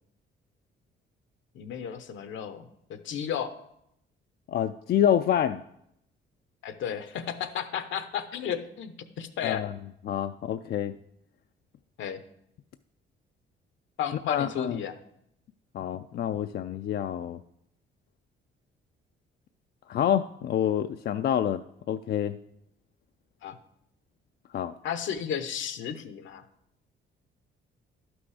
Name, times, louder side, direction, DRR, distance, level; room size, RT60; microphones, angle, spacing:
voice 1, 1.5-3.6 6.6-9.7 12.0-12.2 14.0-15.0 23.4-23.6 24.8-26.4, left 8 dB, 75° left, 10 dB, 0.9 m, -33 dB
voice 2, 4.5-5.6 9.4-9.7 10.1-11.0 14.3-14.8 15.7-17.4 19.9-21.6 21.9-22.4 24.5-24.7, left 10 dB, 55° left, 9 dB, 0.4 m, -27 dB
11.5 x 6.1 x 4.8 m, 0.77 s
cardioid pair, 90°, 20 cm